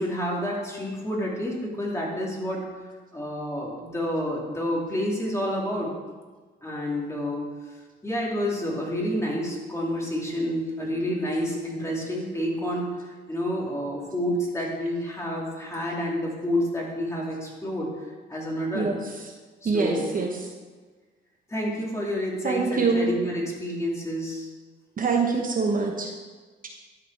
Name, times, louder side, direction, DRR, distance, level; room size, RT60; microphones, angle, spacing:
voice 1, 0.0-2.6 3.1-5.9 6.6-7.4 8.0-17.9 18.3-18.9 19.6-20.0 21.5-24.5, equal, 15° left, -3 dB, 2.7 m, -29 dB
voice 2, 19.6-20.3 22.4-23.1 25.0-26.1, right 4 dB, 45° right, 1 dB, 1.1 m, -24 dB
12.5 x 5.1 x 4.6 m, 1.4 s
cardioid pair, 90°, 20 cm